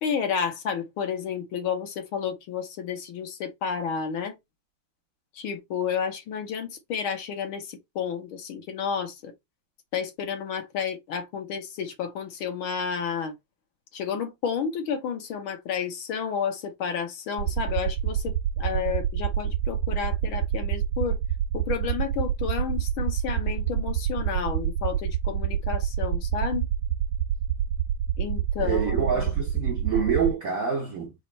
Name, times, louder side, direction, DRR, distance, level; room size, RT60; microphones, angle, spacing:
voice 1, 0.0-4.4 5.3-9.3 9.9-13.3 13.9-21.2 21.5-26.7 28.2-29.3, left 7 dB, 75° left, 1.8 m, -31 dB
sound 1, 17.4-30.3, right 10 dB, 90° right, 1.5 m, -27 dB
voice 2, 28.6-31.1, right 6 dB, 60° right, 0.9 m, -27 dB
4.2 x 2.9 x 4.2 m
omnidirectional pair, 2.3 m